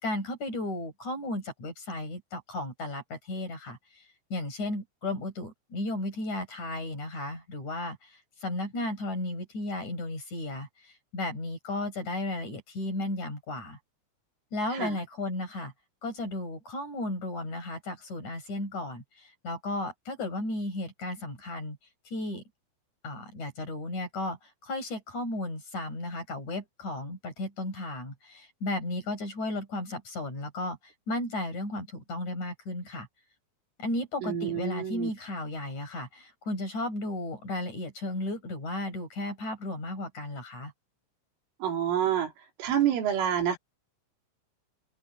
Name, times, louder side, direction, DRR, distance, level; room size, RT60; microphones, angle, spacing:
voice 1, 0.0-4.0 4.3-13.8 14.5-15.7 16.0-21.8 22.1-22.4 23.0-33.1 33.8-40.7, left 1 dB, 40° left, 7.5 m, -34 dB
voice 2, 34.2-35.1 41.6-42.3 42.6-43.6, right 9 dB, 90° right, 5.8 m, -28 dB
open air
omnidirectional pair, 5.5 m